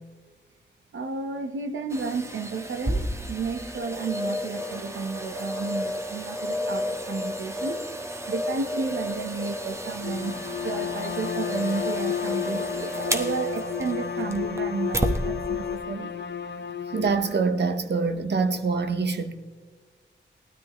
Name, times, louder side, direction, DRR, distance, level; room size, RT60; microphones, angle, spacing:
voice 1, 0.9-7.9 8.3-10.4 10.6-16.1, right 4 dB, 85° right, 1.0 m, -32 dB
sound 1, 1.9-15.2 15.7-15.8, equal, 15° right, 1.1 m, -32 dB
sound 2, 4.6-15.8, right 4 dB, 5° left, 2.1 m, -43 dB
Bowed string instrument, 10.0-17.5, left 8 dB, 60° left, 0.8 m, -32 dB
voice 2, 16.9-19.3, right 4 dB, 60° right, 1.0 m, -25 dB
18.5 x 13.0 x 3.0 m
wide cardioid pair, 95°, 20 cm